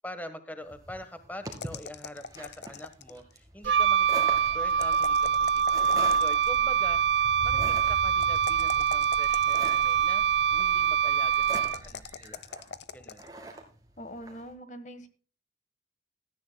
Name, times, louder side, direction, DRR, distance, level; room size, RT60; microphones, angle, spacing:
voice 1, 0.0-12.5 12.9-13.2, left 1 dB, 10° left, 9 dB, 1.3 m, -44 dB
sound 1, 0.7-14.4, right 1 dB, 20° right, 2.3 m, -43 dB
sound 2, 1.5-3.3 4.7-6.6 8.2-10.0 11.3-13.3, left 5 dB, 65° left, 0.9 m, -42 dB
Wind instrument woodwind instrument, 3.6-12.0, right 8 dB, 70° right, 0.8 m, -24 dB
voice 2, 14.0-15.1, equal, 40° left, 10 dB, 1.4 m, -43 dB
17.0 x 13.5 x 2.3 m, 0.36 s
head